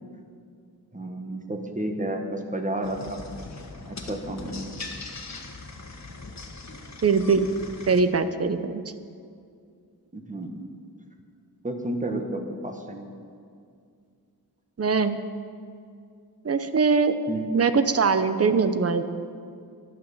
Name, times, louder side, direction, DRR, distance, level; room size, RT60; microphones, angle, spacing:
voice 1, 0.9-3.2 3.9-4.5 10.1-10.6 11.6-13.1 17.3-17.5, right 1 dB, 20° right, 4 dB, 1.5 m, -31 dB
sound 1, 2.8-8.0, left 3 dB, 45° left, 1.5 m, -40 dB
voice 2, 7.0-7.5 7.9-8.8 14.8-15.2 16.4-17.2 17.5-19.0, right 5 dB, 40° right, 11 dB, 0.7 m, -22 dB
12.0 x 11.5 x 7.1 m, 2.3 s
wide cardioid pair, 105°, 39 cm